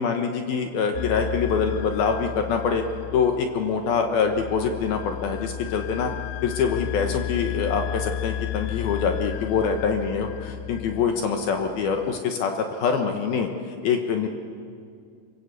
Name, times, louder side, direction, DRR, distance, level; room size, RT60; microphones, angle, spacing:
voice 1, 0.0-2.8 3.1-6.1 6.4-13.5 13.8-14.3, left 6 dB, 65° left, 4 dB, 2.6 m, -25 dB
sound 1, 0.9-12.2, left 13 dB, 85° left, 3.2 m, -34 dB
27.0 x 21.5 x 8.3 m, 2.2 s
omnidirectional pair, 5.4 m